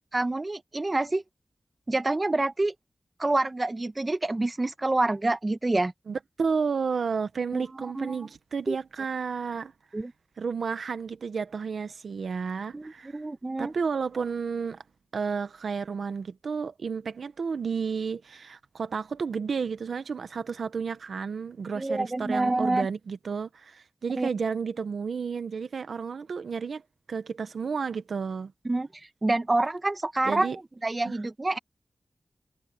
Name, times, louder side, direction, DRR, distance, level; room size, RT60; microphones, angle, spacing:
voice 1, 0.1-1.2 1.9-2.7 3.2-5.9 7.5-7.7 7.9-8.3 8.7-8.8 9.9-10.1 12.7-13.7 21.7-22.9 24.2-24.3 28.6-28.9 29.2-30.5 30.8-31.6, right 2 dB, 40° right, 1.3 m, -27 dB
voice 2, 6.1-9.7 10.4-13.2 13.6-14.8 15.1-26.8 27.1-28.5 30.2-30.6 31.0-31.2, right 5 dB, 90° right, 1.0 m, -31 dB
cardioid pair, 45°, 0 cm